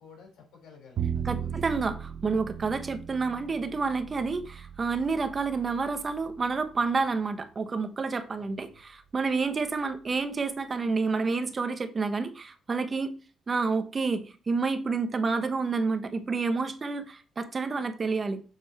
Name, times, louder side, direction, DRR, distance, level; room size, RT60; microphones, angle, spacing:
voice 1, 0.0-1.7 8.0-8.1 8.4-8.8, left 5 dB, 80° left, 4.2 m, -53 dB
Bowed string instrument, 1.0-7.1, right 8 dB, 65° right, 0.6 m, -37 dB
voice 2, 1.2-13.1 13.5-18.4, right 4 dB, 35° right, 1.0 m, -29 dB
7.6 x 4.3 x 4.5 m
cardioid pair, 90°, 0 cm